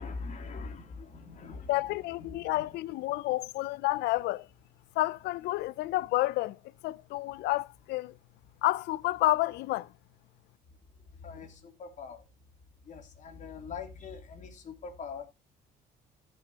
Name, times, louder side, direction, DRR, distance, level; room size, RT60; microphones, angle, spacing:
voice 1, 0.0-2.7 11.2-12.2 12.9-15.2, left 4 dB, 45° left, 3.1 m, -43 dB
voice 2, 1.7-4.5 5.0-8.1 8.6-9.9, left 18 dB, 85° left, 0.5 m, -30 dB
14.5 x 7.0 x 2.9 m
cardioid pair, 110°, 17 cm